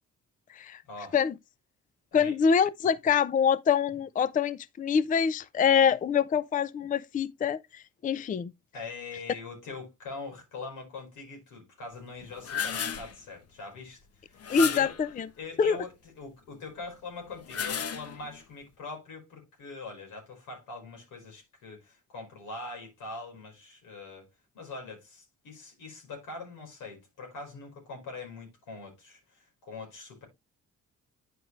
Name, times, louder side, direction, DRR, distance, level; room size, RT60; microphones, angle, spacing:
voice 1, 0.9-1.2 2.1-2.3 8.7-14.9 15.4-24.3 24.5-30.3, left 3 dB, 90° left, 4.7 m, -43 dB
voice 2, 2.1-8.5 14.5-15.3 15.6-15.8, left 6 dB, 25° left, 0.4 m, -25 dB
sound 1, 12.2-13.2 14.4-15.1 17.3-18.4, left 7 dB, 55° left, 1.0 m, -33 dB
9.4 x 5.3 x 3.1 m
cardioid pair, 90°, 30 cm